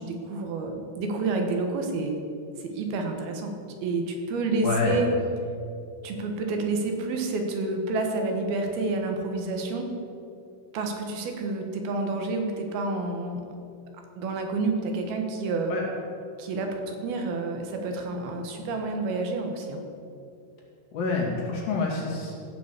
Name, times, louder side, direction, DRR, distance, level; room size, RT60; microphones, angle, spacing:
voice 1, 0.0-2.2 2.6-3.5 3.8-5.1 6.0-9.9 10.7-13.4 14.2-15.7 16.4-19.8, right 3 dB, 80° right, 3 dB, 3.2 m, -29 dB
voice 2, 4.6-5.0 15.7-15.8 20.9-22.3, left 4 dB, 60° left, -3 dB, 3.9 m, -27 dB
15.5 x 6.2 x 8.1 m, 2.6 s
omnidirectional pair, 4.3 m